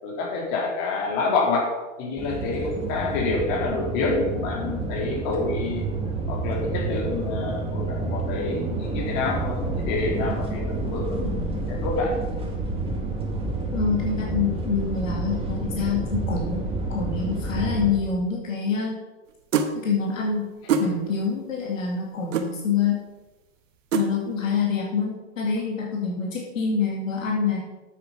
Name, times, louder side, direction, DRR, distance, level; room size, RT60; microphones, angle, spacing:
voice 1, 0.0-1.7 2.0-5.8 6.3-12.2, left 3 dB, 50° left, -1 dB, 3.6 m, -27 dB
sound 1, 2.2-17.9, right 2 dB, 15° right, 2.2 m, -29 dB
voice 2, 13.7-19.0 19.7-20.5 20.8-23.0 23.9-27.6, left 5 dB, 90° left, -2 dB, 2.4 m, -26 dB
sound 2, 19.5-19.7 20.7-20.9 22.3-22.5 23.9-24.1, right 5 dB, 75° right, 1.3 m, -22 dB
8.3 x 8.2 x 5.7 m, 1.2 s
hypercardioid pair, 120°, 38 cm